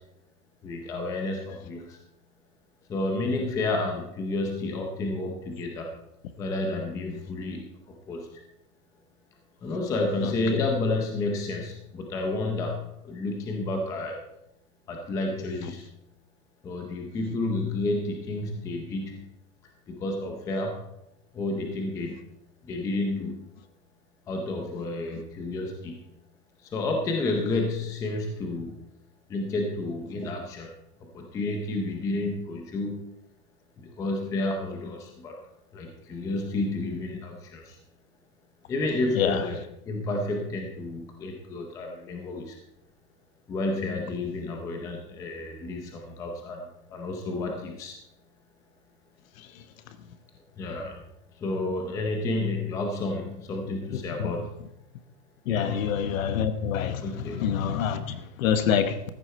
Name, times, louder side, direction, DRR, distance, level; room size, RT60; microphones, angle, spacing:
voice 1, 0.6-2.0 2.9-5.9 6.4-8.4 9.6-14.2 14.9-15.8 16.6-19.3 19.9-20.8 21.3-22.2 22.6-23.5 24.3-26.0 26.6-28.8 29.3-30.7 31.0-33.1 33.8-35.4 35.7-37.8 38.7-42.6 43.5-47.9 50.6-51.0 51.4-54.5 55.5-55.7 57.0-57.4, left 2 dB, 5° left, 2 dB, 0.6 m, -31 dB
voice 2, 10.2-10.6 39.1-39.4 53.9-54.3 55.5-59.0, left 8 dB, 55° left, 11 dB, 1.2 m, -27 dB
14.5 x 9.7 x 4.3 m, 0.83 s
supercardioid pair, 165°, 48 cm